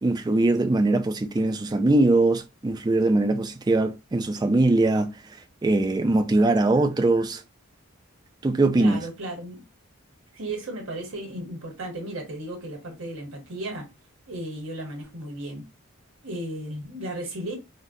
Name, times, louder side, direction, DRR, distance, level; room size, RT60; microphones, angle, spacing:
voice 1, 0.0-5.4 5.6-7.4 8.4-9.1, right 2 dB, 20° right, 0.3 m, -22 dB
voice 2, 8.7-9.6 10.3-13.9 14.3-15.6 16.2-17.6, right 1 dB, 65° right, 1.2 m, -35 dB
3.7 x 2.1 x 2.6 m
head